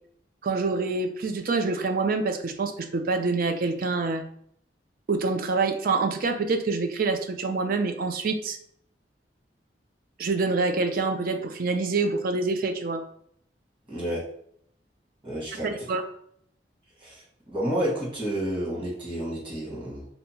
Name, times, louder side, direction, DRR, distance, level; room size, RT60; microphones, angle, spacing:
voice 1, 0.4-4.2 5.1-8.6 10.2-13.0 15.9-16.0, right 3 dB, 55° right, 6 dB, 0.4 m, -26 dB
voice 2, 13.9-14.2 15.2-15.7 17.0-17.2 17.5-20.1, right 1 dB, 30° right, -5 dB, 1.3 m, -30 dB
2.8 x 2.2 x 4.0 m, 0.67 s
head